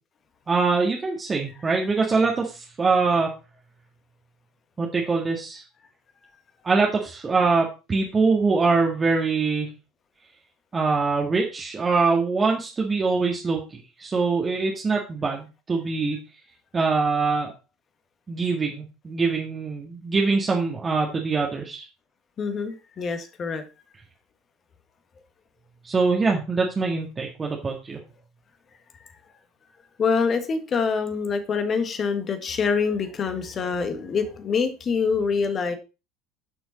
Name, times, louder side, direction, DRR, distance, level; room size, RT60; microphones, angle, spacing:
voice 1, 0.5-3.3 4.8-5.6 6.6-9.7 10.7-16.2 16.7-17.5 18.3-21.9 25.8-28.0, right 4 dB, 20° right, -1 dB, 1.9 m, -23 dB
voice 2, 22.4-23.6 30.0-35.8, left 5 dB, 30° left, 9 dB, 1.7 m, -25 dB
11.5 x 6.2 x 4.2 m, 0.30 s
figure-of-eight pair, 70°, 0 cm